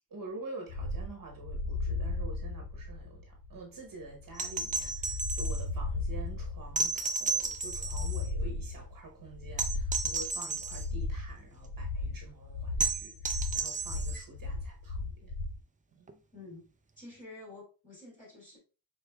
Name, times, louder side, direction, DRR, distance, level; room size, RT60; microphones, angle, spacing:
voice 1, 0.1-15.3 15.9-16.2, right 3 dB, 50° right, 0.9 m, -47 dB
sound 1, 0.7-15.6, left 3 dB, 50° left, 0.9 m, -36 dB
sound 2, 4.3-5.6 6.8-8.3 9.6-10.9 12.8-14.2 16.1-16.2, right 4 dB, 20° right, 0.3 m, -33 dB
voice 2, 16.3-16.7 17.0-18.6, left 2 dB, 20° left, 2.5 m, -49 dB
4.8 x 4.4 x 2.2 m
wide cardioid pair, 165°, 43 cm